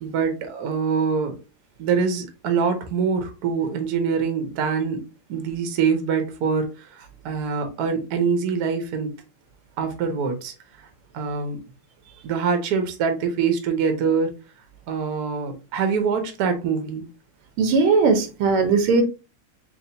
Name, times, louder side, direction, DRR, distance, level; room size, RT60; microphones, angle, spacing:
voice 1, 0.0-1.4 1.8-5.0 5.3-9.1 9.8-10.5 10.8-10.9 11.1-11.6 12.2-14.3 14.9-17.1, right 5 dB, 60° right, 1.1 m, -24 dB
voice 2, 17.6-19.0, right 4 dB, 90° right, 1.7 m, -18 dB
4.8 x 3.0 x 2.6 m
omnidirectional pair, 2.3 m